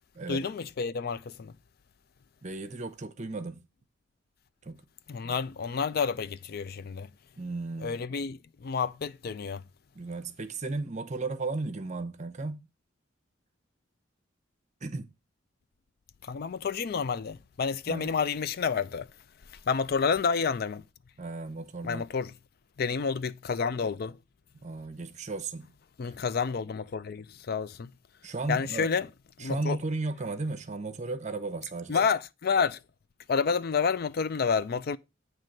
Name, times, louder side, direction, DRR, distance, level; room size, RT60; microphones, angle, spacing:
voice 1, 0.3-1.5 5.1-7.1 7.8-9.6 16.2-19.1 19.5-20.8 21.8-22.3 22.8-24.2 26.0-27.9 28.5-29.1 29.4-29.8 31.9-32.8 33.3-35.0, left 5 dB, 50° left, 0.4 m, -29 dB
voice 2, 2.4-3.6 4.6-4.8 5.2-5.4 7.4-8.1 9.9-12.7 14.8-15.1 17.9-18.2 21.2-22.1 24.6-25.7 26.0-26.2 28.2-28.9 29.4-32.0, right 3 dB, 35° right, 0.7 m, -35 dB
9.0 x 3.2 x 6.4 m
head